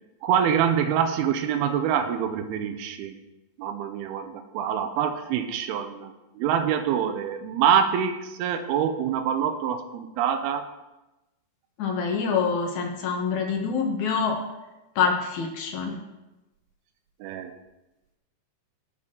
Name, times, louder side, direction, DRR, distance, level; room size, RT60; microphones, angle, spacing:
voice 1, 0.2-3.1 3.6-10.7 17.2-17.6, right 8 dB, 80° right, 8 dB, 2.6 m, -25 dB
voice 2, 11.8-14.4 15.0-16.0, left 5 dB, 65° left, 2 dB, 2.1 m, -26 dB
18.0 x 6.1 x 3.8 m, 1.0 s
omnidirectional pair, 4.7 m